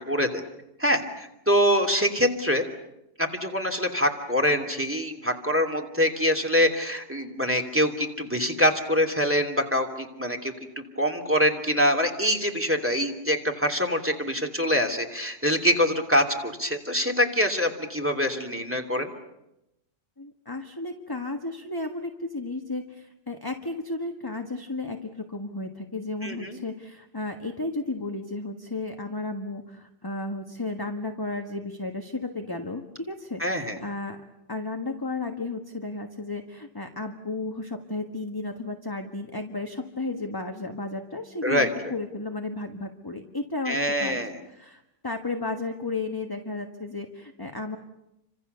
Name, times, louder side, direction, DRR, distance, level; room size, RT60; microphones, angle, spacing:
voice 1, 0.1-0.4 0.8-2.7 3.2-19.1 26.2-26.6 33.4-33.8 41.4-41.7 43.7-44.4, equal, 10° right, 4 dB, 2.9 m, -25 dB
voice 2, 20.2-34.2 34.5-44.2 44.5-47.8, left 2 dB, 15° left, 4 dB, 1.4 m, -33 dB
30.0 x 26.0 x 6.9 m, 0.88 s
omnidirectional pair, 1.7 m